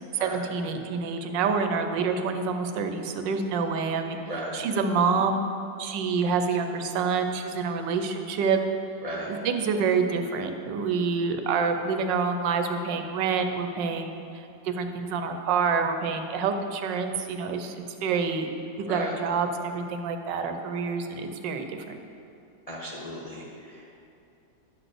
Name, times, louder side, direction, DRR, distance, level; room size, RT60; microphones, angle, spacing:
voice 1, 0.1-4.2 4.5-5.4 5.8-8.6 9.2-18.5 18.8-21.8, right 5 dB, 85° right, 7 dB, 1.4 m, -27 dB
voice 2, 4.3-4.6 9.0-9.3 18.9-19.1 22.7-24.0, equal, 35° left, -4 dB, 0.6 m, -36 dB
10.5 x 4.0 x 6.5 m, 2.6 s
omnidirectional pair, 1.9 m